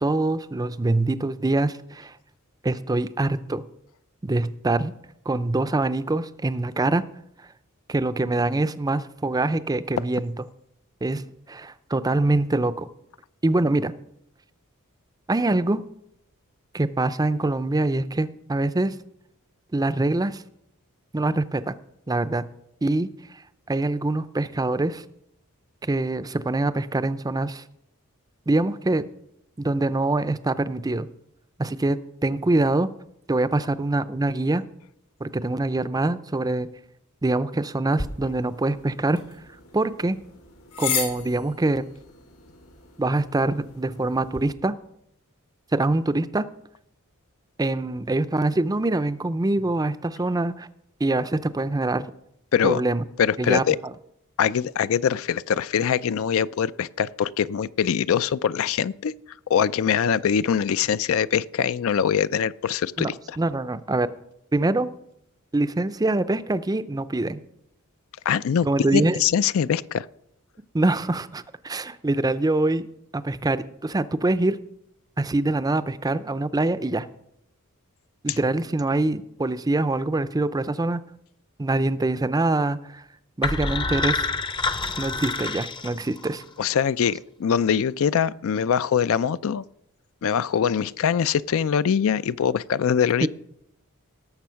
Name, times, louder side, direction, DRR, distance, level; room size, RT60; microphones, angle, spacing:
voice 1, 0.0-2.1 2.6-3.7 4.2-4.9 5.3-7.0 7.9-10.3 11.0-12.9 13.4-13.9 15.3-15.8 16.7-18.9 19.7-20.4 21.1-21.8 22.1-22.5 22.8-23.1 23.7-25.0 25.8-27.6 28.5-29.0 29.6-31.1 31.6-32.9 33.3-34.6 35.2-36.7 37.2-39.2 39.7-40.2 40.8-41.8 43.0-44.7 45.7-46.5 47.6-50.7 51.0-52.1 52.6-53.0 53.4-53.6 63.0-63.1 63.4-64.1 64.5-64.9 65.5-67.4 68.6-69.2 70.7-72.9 73.1-74.6 75.2-77.1 78.2-81.0 81.6-83.0 83.4-84.3 85.0-86.4 93.2-93.3, right 2 dB, 15° right, 14 dB, 0.5 m, -24 dB
sound 1, 37.9-44.4, left 6 dB, 85° left, 3.5 m, -35 dB
voice 2, 53.2-53.8 54.4-59.1 59.5-63.4 68.3-68.7 68.9-70.1 78.3-78.4 86.6-89.6 90.2-93.3, left 8 dB, 65° left, 16 dB, 0.4 m, -23 dB
sound 2, 83.4-86.4, left 3 dB, 20° left, 0.6 m, -27 dB
18.0 x 6.9 x 5.7 m, 0.77 s
head